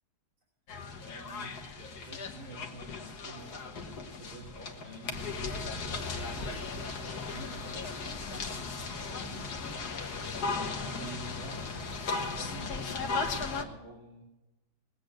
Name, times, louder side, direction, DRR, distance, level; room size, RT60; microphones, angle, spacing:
sound 1, 0.7-13.6, left 4 dB, 65° left, 2.0 m, -37 dB
voice 1, 1.0-10.0 10.7-14.2, right 1 dB, 45° right, -4 dB, 3.6 m, -49 dB
21.5 x 8.6 x 6.5 m, 0.98 s
omnidirectional pair, 1.9 m